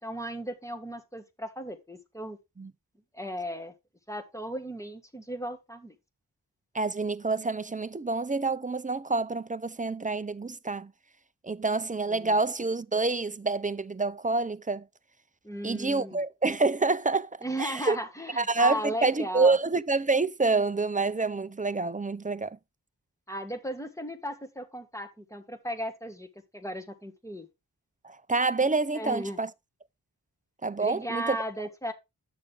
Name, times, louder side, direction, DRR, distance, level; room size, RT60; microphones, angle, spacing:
voice 1, 0.0-2.4 3.1-3.7 4.1-5.9 12.1-12.3 15.4-16.2 17.4-19.6 23.3-26.3 26.5-27.5 28.9-29.4 30.8-31.9, right 1 dB, 5° left, 1.6 m, -36 dB
voice 2, 6.7-10.9 11.4-14.9 15.6-18.0 18.4-22.6 28.0-29.5 30.6-31.4, right 3 dB, 20° right, 0.4 m, -27 dB
9.6 x 6.6 x 3.3 m
wide cardioid pair, 70°, 41 cm